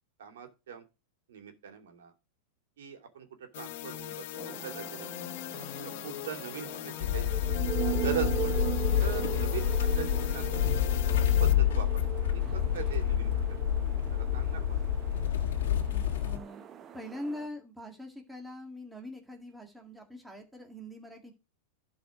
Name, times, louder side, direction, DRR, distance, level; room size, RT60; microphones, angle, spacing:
voice 1, 0.2-0.8 1.3-2.1 2.8-3.3 3.5-5.3 5.5-7.3 8.0-8.6 9.0-10.6 10.9-12.0 12.3-13.4 14.1-14.8, right 8 dB, 90° right, 5 dB, 2.7 m, -40 dB
sound 1, 3.5-11.5, left 15 dB, 55° left, 0.8 m, -41 dB
sound 2, 4.4-17.5, right 12 dB, 25° right, 0.6 m, -39 dB
sound 3, 7.0-16.4, left 10 dB, 90° left, 1.3 m, -28 dB
voice 2, 15.9-16.6 16.9-21.3, left 1 dB, 5° right, 2 dB, 1.9 m, -43 dB
11.5 x 4.9 x 5.0 m, 0.27 s
supercardioid pair, 155°, 0 cm